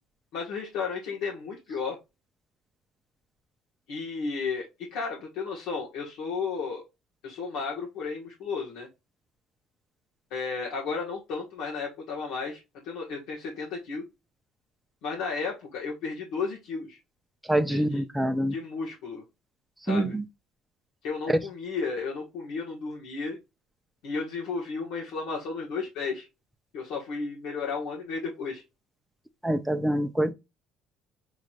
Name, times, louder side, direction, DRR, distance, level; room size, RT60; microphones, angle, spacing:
voice 1, 0.3-2.0 3.9-6.8 7.2-8.9 10.3-14.0 15.0-17.0 17.7-18.0 18.5-19.2 19.8-20.1 21.0-23.4 24.0-26.3 26.7-28.6, left 4 dB, 80° left, 1.5 m, -33 dB
voice 2, 17.5-18.5 19.9-20.2 21.3-21.4 29.4-30.3, right 1 dB, 5° right, 0.6 m, -25 dB
6.4 x 3.0 x 2.5 m
cardioid pair, 125°, 0 cm